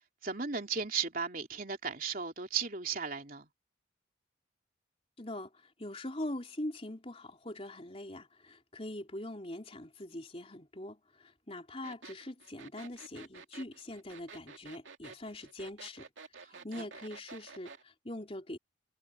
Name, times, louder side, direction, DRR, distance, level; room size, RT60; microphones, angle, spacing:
voice 1, 0.2-3.5 16.5-16.9, right 6 dB, 45° right, 3.4 m, -36 dB
voice 2, 5.2-16.1 16.4-18.6, left 1 dB, 30° left, 3.7 m, -43 dB
sound 1, 11.8-17.8, right 4 dB, 75° right, 2.7 m, -50 dB
head